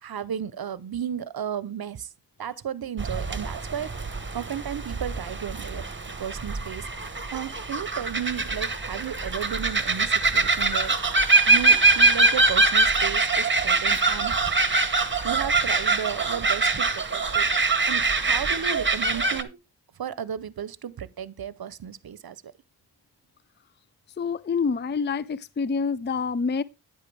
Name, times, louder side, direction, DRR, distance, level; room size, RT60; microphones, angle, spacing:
voice 1, 0.0-2.1 2.4-3.9 4.3-5.9 6.2-14.4 15.2-19.6 20.0-22.5, right 8 dB, 65° right, 0.8 m, -34 dB
sound 1, 3.0-19.4, right 3 dB, 30° right, 1.2 m, -23 dB
voice 2, 24.2-26.6, left 5 dB, 30° left, 0.4 m, -27 dB
9.9 x 8.4 x 3.3 m
cardioid pair, 55°, 40 cm